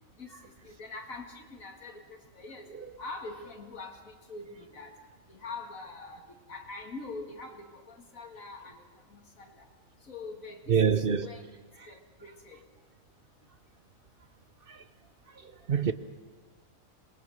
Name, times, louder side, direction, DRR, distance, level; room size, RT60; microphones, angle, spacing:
voice 1, 0.2-2.7 3.0-4.9 5.3-8.8 9.1-9.6 10.1-11.4 11.9-12.6, left 3 dB, 80° left, 2.7 m, -44 dB
voice 2, 10.7-11.3 14.7-14.8 15.7-15.9, right 7 dB, 50° right, 0.9 m, -25 dB
26.5 x 21.0 x 6.5 m
omnidirectional pair, 1.4 m